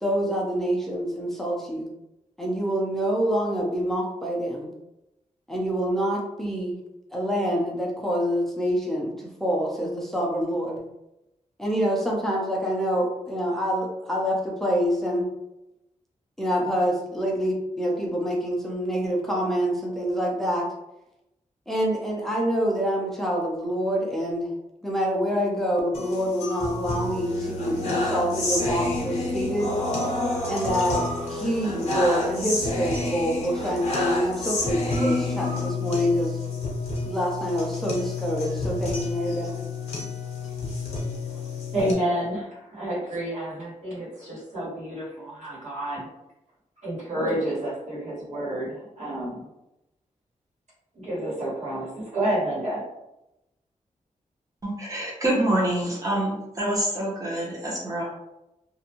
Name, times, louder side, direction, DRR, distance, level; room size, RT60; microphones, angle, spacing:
voice 1, 0.0-1.9 2.4-4.7 5.5-6.8 7.1-10.8 11.6-15.3 16.4-20.7 21.7-24.5 24.8-29.8 30.5-36.4 37.0-39.5, equal, ahead, -3 dB, 0.5 m, -26 dB
sound 1, 25.9-41.9, left 2 dB, 55° left, 0.7 m, -29 dB
voice 2, 41.7-46.1 46.8-49.4 50.9-52.8, right 1 dB, 65° right, -7 dB, 1.4 m, -29 dB
voice 3, 54.6-58.0, right 1 dB, 25° right, -4 dB, 0.8 m, -26 dB
2.5 x 2.2 x 2.9 m, 0.90 s
wide cardioid pair, 170°, 13 cm